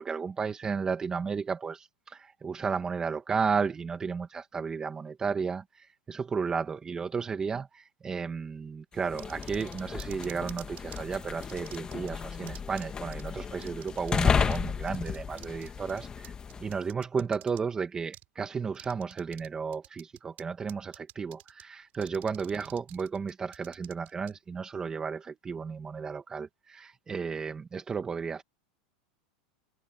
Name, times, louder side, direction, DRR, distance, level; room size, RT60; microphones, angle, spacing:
voice 1, 0.0-16.3 16.6-28.4, right 5 dB, 15° right, 1.8 m, -33 dB
sound 1, 9.0-16.8, left 6 dB, 20° left, 1.3 m, -33 dB
sound 2, 9.2-11.0 11.4-12.1 12.5-12.9 13.1-13.2 13.6-14.6 14.9-17.6 18.1-18.3 18.7-19.5 19.7-20.4 20.7-21.6 21.9-24.3, right 17 dB, 40° right, 7.5 m, -48 dB
supercardioid pair, 150°, 4 cm